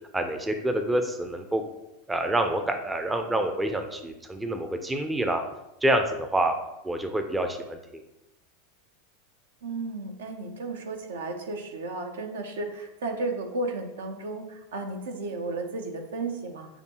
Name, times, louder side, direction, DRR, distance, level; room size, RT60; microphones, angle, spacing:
voice 1, 0.1-1.6 2.1-5.4 5.8-6.5 6.8-8.0, right 1 dB, 10° right, 6 dB, 0.5 m, -27 dB
voice 2, 9.6-16.7, right 2 dB, 70° right, 4 dB, 0.7 m, -33 dB
6.5 x 2.6 x 2.9 m, 0.90 s
figure-of-eight pair, 85°, 0 cm